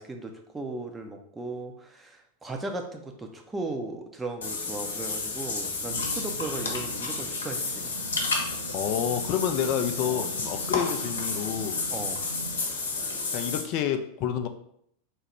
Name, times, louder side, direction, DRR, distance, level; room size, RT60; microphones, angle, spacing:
voice 1, 0.0-7.9 10.0-10.2 11.9-12.2, right 2 dB, 10° right, 3 dB, 0.6 m, -37 dB
Water / Bathtub (filling or washing), 4.4-13.6, left 3 dB, 65° left, 0.8 m, -31 dB
sound 1, 5.9-12.7, right 3 dB, 85° right, 0.6 m, -42 dB
voice 2, 8.7-11.8 13.3-14.5, left 9 dB, 40° left, 8 dB, 0.4 m, -29 dB
3.7 x 2.9 x 4.3 m, 0.70 s
figure-of-eight pair, 90°, 0 cm